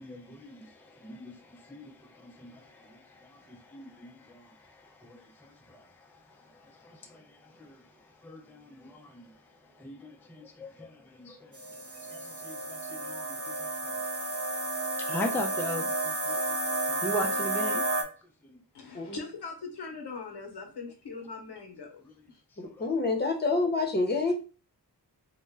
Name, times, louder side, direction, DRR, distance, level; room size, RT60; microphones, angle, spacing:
voice 1, 0.0-18.1 18.4-18.6 21.8-22.1 22.5-22.9, left 1 dB, 5° left, 0.4 m, -41 dB
sound 1, 11.5-18.0, right 2 dB, 45° right, 0.6 m, -31 dB
voice 2, 18.7-22.0 22.3-22.4, left 4 dB, 80° left, 0.7 m, -41 dB
voice 3, 22.6-24.3, left 3 dB, 25° left, 0.7 m, -27 dB
2.1 x 2.1 x 3.4 m
wide cardioid pair, 50°, 40 cm